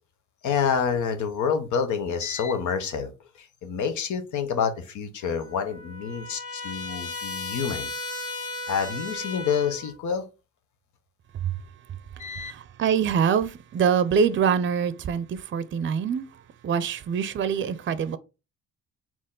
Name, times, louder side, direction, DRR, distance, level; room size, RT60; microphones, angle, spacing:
voice 1, 0.4-7.9 8.7-10.2 12.2-12.5, left 6 dB, 75° left, 1.0 m, -28 dB
Trumpet, 5.2-9.9, left 2 dB, 45° left, 2.1 m, -36 dB
voice 2, 12.4-16.3 16.6-18.2, right 7 dB, 40° right, 0.5 m, -24 dB
4.5 x 2.9 x 3.7 m
cardioid pair, 90°, 30 cm